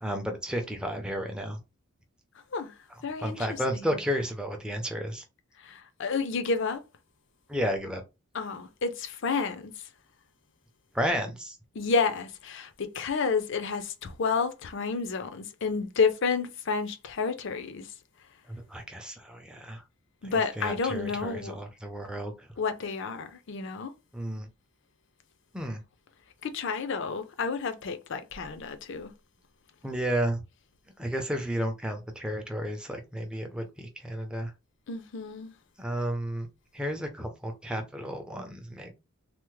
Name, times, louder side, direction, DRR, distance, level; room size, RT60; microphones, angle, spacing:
voice 1, 0.0-1.6 3.2-5.2 7.5-8.0 10.9-11.6 18.5-19.8 20.2-22.3 24.1-24.5 25.5-25.8 29.8-30.4 31.0-34.5 35.8-36.5 36.7-38.9, equal, 5° right, 0.5 m, -32 dB
voice 2, 3.0-3.4 3.7-4.0 5.6-6.8 8.3-9.7 11.7-17.9 20.2-21.6 22.6-23.9 26.4-29.1 34.9-35.5, left 5 dB, 55° left, 0.5 m, -30 dB
3.3 x 2.0 x 3.1 m
head